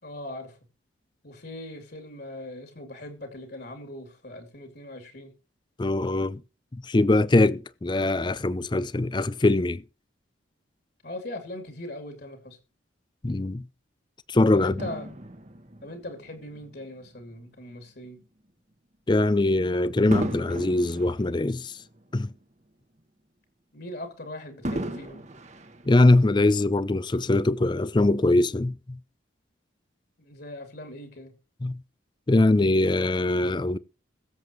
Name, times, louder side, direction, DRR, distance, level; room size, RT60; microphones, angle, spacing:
voice 1, 0.0-0.6 1.2-5.3 11.0-12.6 14.5-15.1 15.8-18.2 23.7-25.2 30.2-31.3, left 1 dB, 55° left, 2.8 m, -40 dB
voice 2, 5.8-6.4 6.7-9.8 13.2-13.6 14.3-14.8 19.1-21.8 22.1-22.3 25.9-29.0 31.6-31.8 32.3-33.8, left 2 dB, 25° left, 0.5 m, -22 dB
Fireworks, 14.8-17.4 18.0-18.2 20.1-22.6 23.0-23.1 24.6-26.5 27.3-27.4, right 1 dB, 35° right, 1.3 m, -36 dB
21.5 x 7.8 x 3.1 m
head